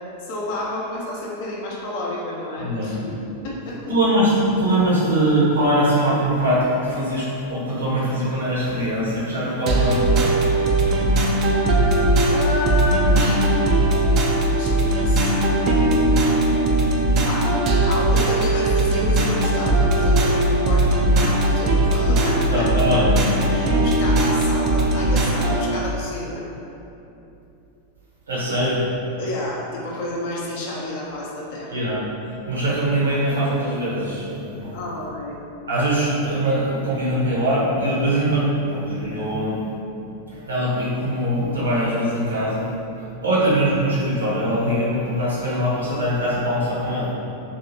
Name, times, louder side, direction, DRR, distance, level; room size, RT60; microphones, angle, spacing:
voice 1, 0.2-3.2 3.4-3.8 12.3-13.4 14.6-15.6 17.2-17.5 17.8-22.7 23.5-26.4 29.2-31.8 34.7-35.4, left 1 dB, 50° left, -4 dB, 0.5 m, -30 dB
voice 2, 2.6-3.0 3.9-10.3 10.8-11.0 22.5-23.1 28.3-28.8 31.7-32.0 32.5-34.8 35.7-39.7 40.3-42.7 43.2-47.1, right 1 dB, 70° right, -7 dB, 0.8 m, -22 dB
sound 1, 9.7-25.7, right 1 dB, 35° right, 0.3 m, -19 dB
2.8 x 2.7 x 2.7 m, 2.9 s
figure-of-eight pair, 90°, 0 cm